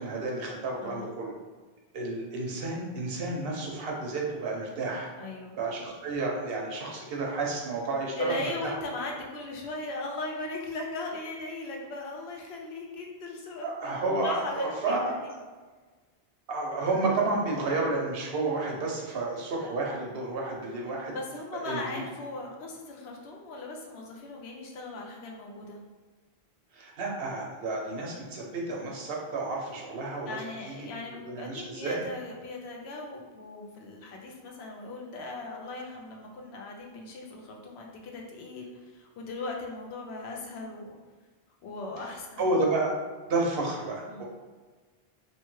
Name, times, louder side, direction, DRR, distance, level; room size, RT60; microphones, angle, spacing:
voice 1, 0.0-1.4 1.9-5.1 5.6-8.7 13.6-15.1 16.5-21.1 21.6-22.0 26.7-30.9 31.3-32.0 42.4-42.9 43.3-44.2, right 2 dB, 70° right, -2 dB, 0.9 m, -31 dB
voice 2, 5.2-5.6 8.2-15.2 21.1-25.8 30.3-41.0 41.6-42.5 44.1-44.2, left 2 dB, 85° left, 0 dB, 0.9 m, -38 dB
3.0 x 2.1 x 3.0 m, 1.4 s
omnidirectional pair, 1.0 m